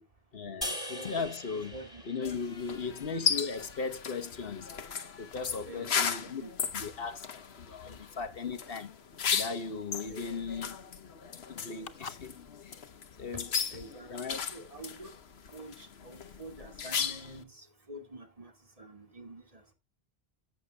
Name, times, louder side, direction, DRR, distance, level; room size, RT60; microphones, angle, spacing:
voice 1, 0.3-1.8 2.0-4.7 5.2-6.4 6.7-8.9 9.3-10.8 11.5-12.3 12.6-12.9 13.2-13.5 14.1-14.4, left 5 dB, 65° left, 1.2 m, -37 dB
sound 1, 0.6-3.9, left 1 dB, 20° left, 3.4 m, -42 dB
voice 2, 0.9-1.3 1.7-2.0 5.7-6.5 7.9-8.0 10.1-10.2 13.7-14.1 14.5-15.1 15.5-18.5 18.8-19.7, right 1 dB, 35° right, 2.1 m, -47 dB
sound 2, 2.2-17.4, left 7 dB, 90° left, 1.2 m, -36 dB
16.5 x 7.9 x 2.2 m
omnidirectional pair, 1.0 m